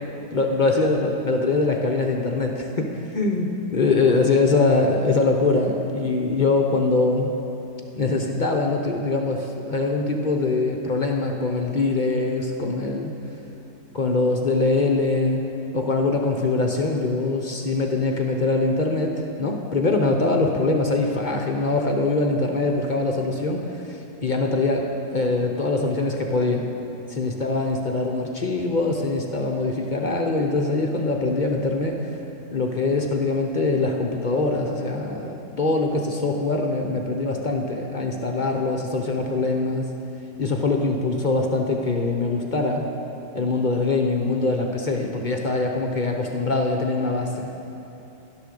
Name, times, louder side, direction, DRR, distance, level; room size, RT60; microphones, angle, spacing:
voice 1, 0.3-7.3 7.9-13.1 13.9-15.4 15.7-26.7 27.1-32.0 32.5-39.9 40.4-42.9 43.3-47.5, left 3 dB, 40° left, 1 dB, 0.7 m, -23 dB
12.0 x 11.5 x 6.6 m, 3.0 s
omnidirectional pair, 1.9 m